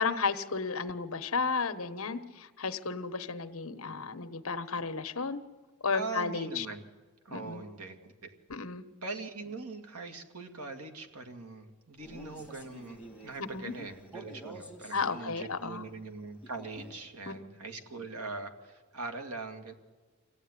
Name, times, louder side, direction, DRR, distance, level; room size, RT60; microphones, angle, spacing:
voice 1, 0.0-5.4 5.8-6.7 7.3-7.6 8.5-8.8 13.5-13.7 14.9-15.8 17.3-17.4, left 4 dB, 70° left, 10 dB, 1.2 m, -33 dB
voice 2, 5.9-6.8 7.2-8.3 9.0-19.7, right 3 dB, 85° right, 5 dB, 2.2 m, -42 dB
Male speech man speaking, 11.9-15.1 16.4-17.1, right 1 dB, 5° right, 2.5 m, -49 dB
24.0 x 16.0 x 9.8 m, 1.3 s
head